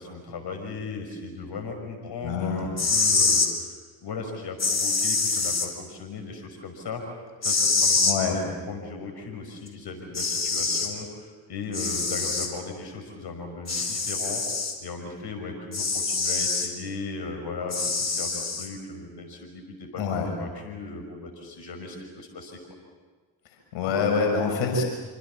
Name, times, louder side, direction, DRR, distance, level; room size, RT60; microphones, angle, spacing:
voice 1, 0.0-7.0 7.4-8.1 8.5-14.4 14.8-20.0 20.3-22.6, left 4 dB, 50° left, 4 dB, 5.7 m, -37 dB
voice 2, 2.2-2.7 8.0-8.4 20.0-20.3 23.7-24.8, left 5 dB, 65° left, 2 dB, 6.2 m, -25 dB
sound 1, 2.6-3.5 4.6-5.7 7.4-8.2 9.7-9.8 10.1-10.9 11.7-12.5 13.7-14.8 15.7-16.7 17.7-18.7, left 4 dB, 30° left, 4.5 m, -25 dB
27.5 x 26.0 x 7.4 m, 1.4 s
hypercardioid pair, 45°, 50 cm